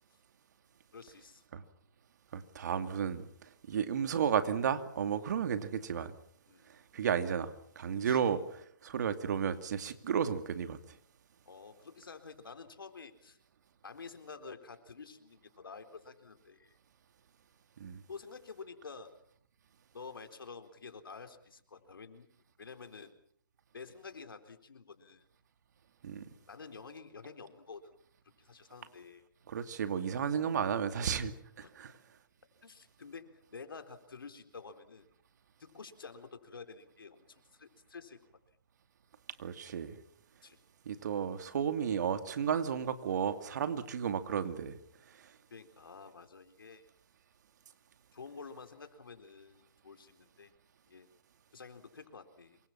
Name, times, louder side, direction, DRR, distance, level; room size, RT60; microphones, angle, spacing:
voice 1, 0.9-1.4 6.5-6.7 7.9-8.4 11.5-13.4 13.8-16.8 18.1-19.2 19.9-22.3 22.6-23.2 23.7-25.2 26.5-27.9 28.4-29.2 31.6-31.7 32.6-35.1 35.6-38.2 40.4-40.6 45.5-46.9 48.1-50.5 50.9-51.1 51.5-52.6, left 5 dB, 85° left, 8 dB, 4.0 m, -49 dB
voice 2, 2.3-3.3 3.7-6.1 6.9-8.4 8.8-10.8 17.8-18.0 26.0-26.2 29.5-31.9 39.4-40.0 40.9-44.8 45.2-45.3, right 7 dB, 55° right, 9 dB, 2.5 m, -33 dB
27.0 x 24.0 x 6.0 m, 0.63 s
hypercardioid pair, 155°, 11 cm